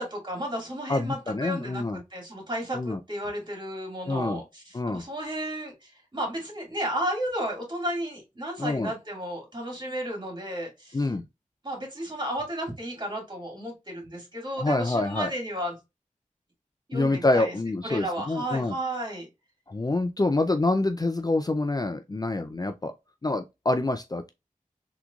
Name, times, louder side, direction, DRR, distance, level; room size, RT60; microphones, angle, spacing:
voice 1, 0.0-11.1 11.6-15.8 16.9-17.6 17.8-19.3, right 1 dB, 35° right, 2.0 m, -33 dB
voice 2, 0.9-2.0 2.7-3.0 4.1-4.4 4.7-5.1 8.6-8.9 10.9-11.2 14.6-15.3 16.9-18.7 19.7-22.9 23.2-24.3, left 2 dB, 30° left, 0.4 m, -26 dB
3.7 x 3.0 x 2.3 m
wide cardioid pair, 50°, 14 cm